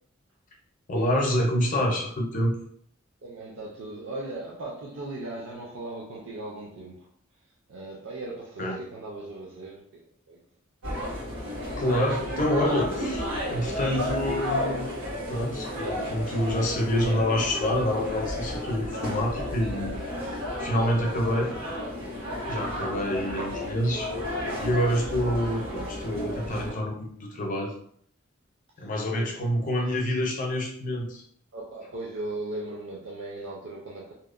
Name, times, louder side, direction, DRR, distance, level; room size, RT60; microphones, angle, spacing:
voice 1, 0.9-2.6 8.6-8.8 11.7-14.9 15.3-20.1 20.6-21.5 22.5-24.1 24.6-27.7 28.8-31.2, equal, 40° left, 0 dB, 0.6 m, -27 dB
voice 2, 3.2-7.1 7.4-10.4 28.8-28.9 29.2-29.4 31.5-34.1, right 2 dB, 65° right, -3 dB, 0.4 m, -38 dB
sound 1, 10.8-26.7, left 1 dB, 85° right, 1.4 m, -32 dB
2.8 x 2.0 x 2.4 m, 0.63 s
head